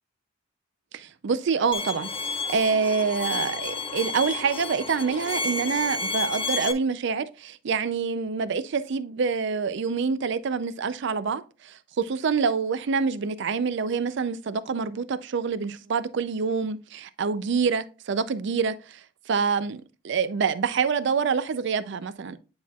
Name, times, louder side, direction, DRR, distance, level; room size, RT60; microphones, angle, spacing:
voice 1, 0.9-19.0 19.3-22.4, right 5 dB, 60° right, 0.4 m, -26 dB
Bowed string instrument, 1.7-6.7, left 4 dB, 30° left, 0.5 m, -31 dB
9.3 x 4.3 x 2.3 m
head